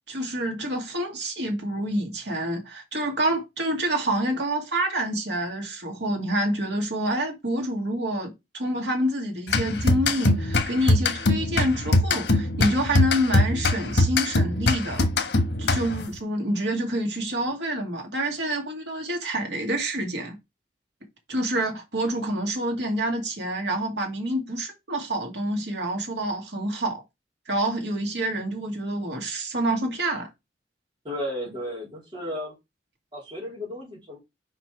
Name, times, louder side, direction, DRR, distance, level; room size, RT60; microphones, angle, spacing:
voice 1, 0.1-15.1 15.6-20.3 21.3-27.0 27.5-30.3, right 1 dB, 85° right, 2.3 m, -27 dB
sound 1, 9.5-16.1, left 2 dB, 80° left, 1.3 m, -23 dB
voice 2, 31.0-32.5 33.1-34.2, equal, 25° right, 3.5 m, -34 dB
5.9 x 5.2 x 4.9 m
head